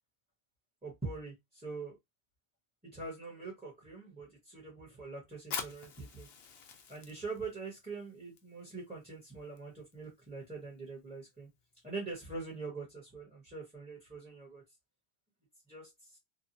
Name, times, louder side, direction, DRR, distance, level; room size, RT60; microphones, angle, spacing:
voice 1, 0.8-2.0 2.9-6.3 6.9-11.5 11.8-14.6 15.7-16.2, right 4 dB, 10° right, 1.0 m, -43 dB
Fire, 5.4-12.6, left 6 dB, 70° left, 0.8 m, -48 dB
2.9 x 2.3 x 2.6 m
omnidirectional pair, 1.1 m